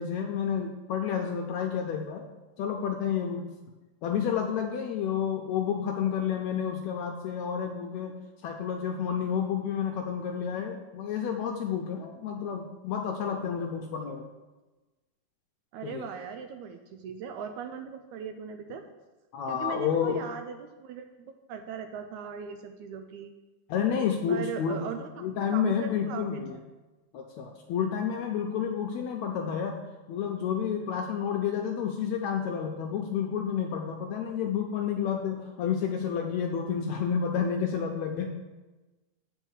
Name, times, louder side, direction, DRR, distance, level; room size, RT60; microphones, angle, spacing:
voice 1, 0.0-2.3 2.6-3.5 4.0-8.1 8.4-14.3 15.8-16.1 19.3-20.2 23.7-24.9 25.2-26.6 27.1-29.8 30.1-38.3, left 7 dB, 80° left, 3 dB, 1.6 m, -30 dB
voice 2, 15.7-18.8 19.5-23.3 24.3-25.2 25.5-26.4, right 6 dB, 80° right, 6 dB, 1.8 m, -39 dB
9.1 x 4.6 x 7.2 m, 1.2 s
omnidirectional pair, 3.8 m